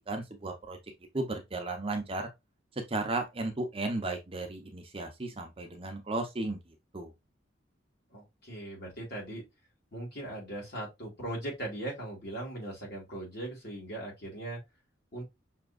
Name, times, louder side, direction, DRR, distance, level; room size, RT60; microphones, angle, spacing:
voice 1, 0.1-0.8 1.1-2.3 2.9-6.6 6.9-7.1, right 2 dB, 30° right, 0.8 m, -34 dB
voice 2, 8.1-9.4 9.9-14.6 15.1-15.3, right 1 dB, 55° left, 2.7 m, -39 dB
5.9 x 2.9 x 2.4 m
head